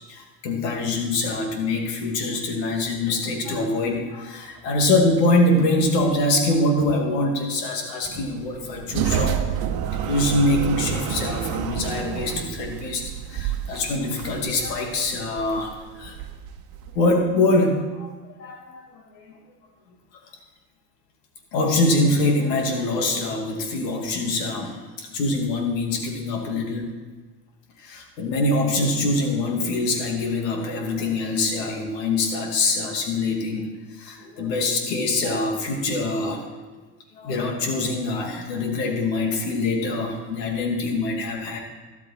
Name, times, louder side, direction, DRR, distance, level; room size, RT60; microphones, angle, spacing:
voice 1, 0.1-9.5 9.9-13.0 13.3-16.2 16.9-18.1 18.4-18.8 19.2-19.3 21.5-26.9 27.8-33.7 34.0-36.4 37.2-41.6, left 2 dB, 75° left, 2 dB, 2.7 m, -24 dB
sound 1, 8.0-17.1, right 9 dB, 45° right, 1.2 m, -29 dB
13.0 x 12.5 x 4.4 m, 1.3 s
hypercardioid pair, 80°, 50 cm